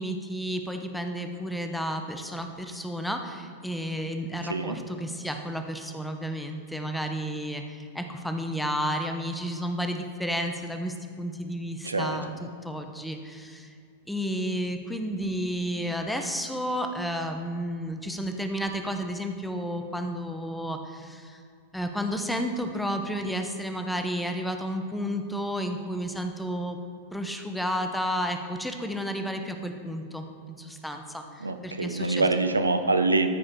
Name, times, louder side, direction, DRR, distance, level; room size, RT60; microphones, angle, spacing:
voice 1, 0.0-13.7 14.1-21.4 21.7-26.8 27.1-32.3, equal, 5° left, 5 dB, 0.8 m, -32 dB
voice 2, 4.4-4.8 11.8-12.2 31.4-33.3, right 3 dB, 85° right, 7 dB, 0.5 m, -25 dB
13.5 x 5.0 x 4.4 m, 2.4 s
figure-of-eight pair, 90°, 0 cm